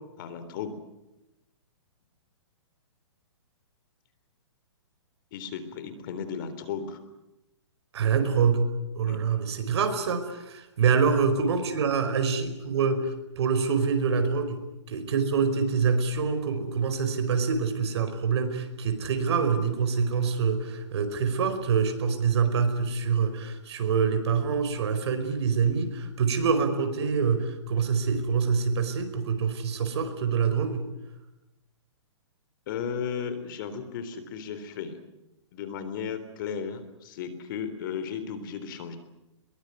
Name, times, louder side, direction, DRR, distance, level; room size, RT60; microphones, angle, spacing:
voice 1, 0.2-0.8 5.3-7.0 9.0-9.2 32.7-35.0 35.5-39.0, left 7 dB, 45° left, 12 dB, 3.7 m, -35 dB
voice 2, 7.9-14.6 14.9-30.9, right 5 dB, 60° right, 9 dB, 5.0 m, -26 dB
23.0 x 22.5 x 9.6 m, 0.94 s
hypercardioid pair, 155°, 15 cm